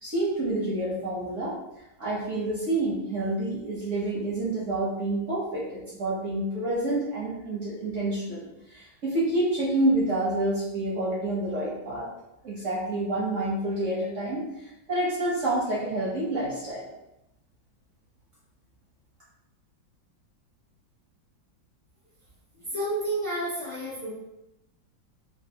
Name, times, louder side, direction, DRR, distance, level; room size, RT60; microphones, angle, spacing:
voice 1, 0.0-1.6 2.0-12.1 12.4-16.9, right 1 dB, 65° right, -6 dB, 0.8 m, -28 dB
voice 2, 22.6-24.1, right 1 dB, 80° left, -8 dB, 0.4 m, -30 dB
3.2 x 2.4 x 2.7 m, 0.90 s
omnidirectional pair, 2.0 m